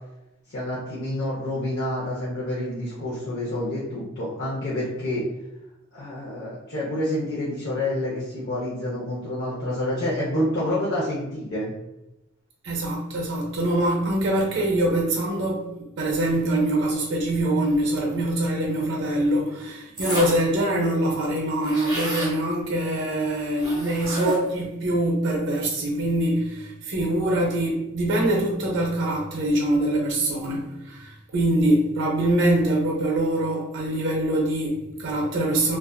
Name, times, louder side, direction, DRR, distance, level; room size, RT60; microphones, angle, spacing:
voice 1, 0.5-5.2 5.9-11.7, left 1 dB, 55° left, -8 dB, 0.6 m, -28 dB
voice 2, 12.6-35.8, right 1 dB, 60° right, -1 dB, 0.5 m, -24 dB
sound 1, 20.0-20.5 20.9-21.0 21.2-22.4 23.6-24.6, right 1 dB, 20° right, 0.9 m, -30 dB
2.4 x 2.3 x 2.2 m, 0.92 s
head